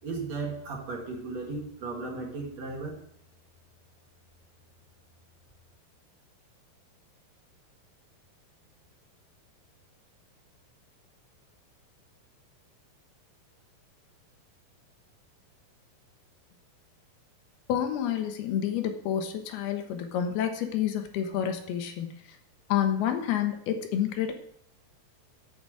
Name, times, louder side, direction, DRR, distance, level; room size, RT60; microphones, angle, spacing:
voice 1, 0.0-3.0, right 3 dB, 50° right, 0 dB, 2.6 m, -35 dB
voice 2, 17.7-22.2 22.7-24.3, left 9 dB, 80° left, 6 dB, 3.1 m, -29 dB
8.9 x 7.9 x 7.7 m, 0.68 s
omnidirectional pair, 4.5 m